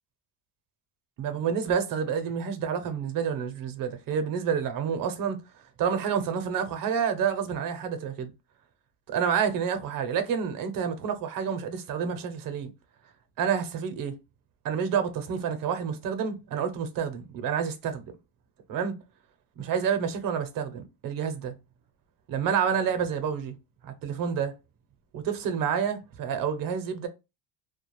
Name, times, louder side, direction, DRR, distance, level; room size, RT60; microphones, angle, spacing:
voice 1, 1.2-5.4 5.8-8.3 9.1-12.7 13.4-14.2 14.6-18.0 18.7-18.9 19.6-21.5 22.3-23.6 23.8-24.6 25.1-27.1, right 7 dB, 50° right, 0.7 m, -29 dB
2.3 x 2.2 x 3.0 m
cardioid pair, 125°, 43 cm